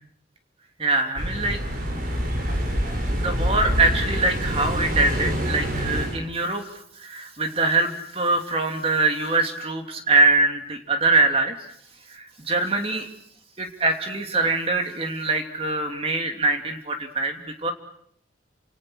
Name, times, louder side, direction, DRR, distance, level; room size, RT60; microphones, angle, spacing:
voice 1, 0.8-1.6 3.2-6.6 7.0-11.6 12.1-13.1 13.6-17.7, right 3 dB, 30° right, 4 dB, 3.0 m, -23 dB
sound 1, 1.2-6.2, equal, 50° right, 6.1 m, -26 dB
29.5 x 27.5 x 6.5 m, 0.70 s
head